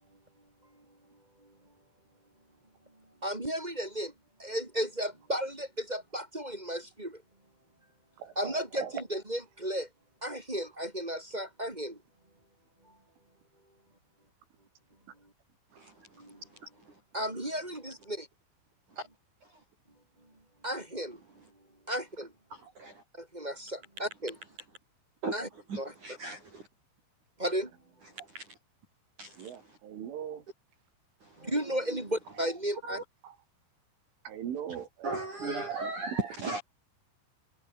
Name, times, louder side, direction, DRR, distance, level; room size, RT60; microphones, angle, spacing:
voice 1, 3.2-4.1 4.4-7.2 8.4-9.9 10.2-12.0 16.2-16.4 17.1-18.3 20.6-21.2 21.9-22.3 23.1-24.3 25.3-25.5 25.8-25.9 27.4-27.7 31.4-33.0, equal, 15° right, 1.8 m, -34 dB
voice 2, 8.2-9.0 15.7-15.8 29.4-30.5 33.2-33.3 34.3-35.1 35.7-36.3, right 9 dB, 75° right, 5.7 m, -40 dB
voice 3, 15.7-17.0 18.9-19.1 19.4-19.6 22.5-23.0 25.2-26.7 28.1-28.6 29.2-29.8 31.2-32.0 32.8-33.0 35.0-36.6, right 3 dB, 40° right, 7.2 m, -39 dB
omnidirectional pair, 5.6 m